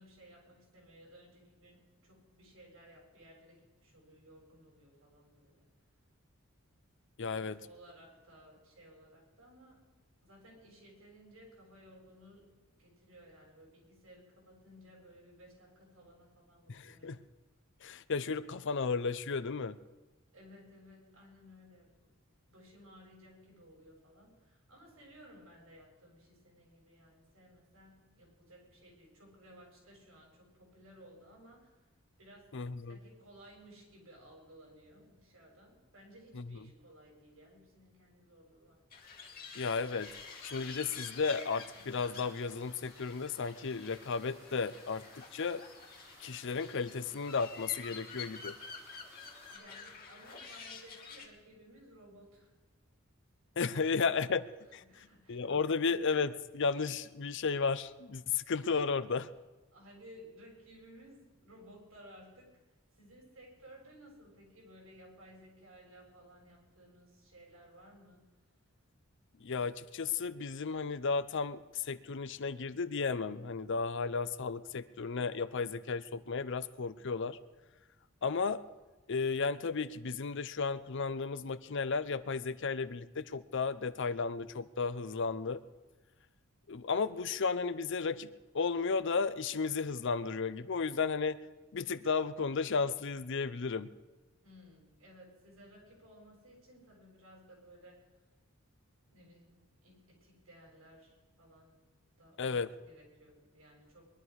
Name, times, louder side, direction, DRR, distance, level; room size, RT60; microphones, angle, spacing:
voice 1, 0.0-5.7 7.3-9.8 10.2-17.2 20.3-22.1 22.5-31.9 32.2-32.5 32.8-38.8 49.5-52.6 54.8-55.8 59.7-62.5 62.9-68.3 94.4-98.1 99.1-101.8 102.2-104.1, equal, 75° right, -1 dB, 7.1 m, -58 dB
voice 2, 7.2-7.6 16.7-17.2 17.8-19.8 32.5-33.0 36.3-36.6 39.6-40.1 40.4-45.6 46.2-48.6 53.6-59.3 69.4-77.4 78.2-78.6 79.1-85.6 86.7-91.4 91.7-93.9 102.4-102.7, left 5 dB, 60° left, 14 dB, 0.6 m, -34 dB
sound 1, 38.9-51.3, left 5 dB, 45° left, 2.2 m, -49 dB
sound 2, 40.0-49.6, equal, 15° right, 6.1 m, -59 dB
22.0 x 11.5 x 4.8 m, 1.2 s
head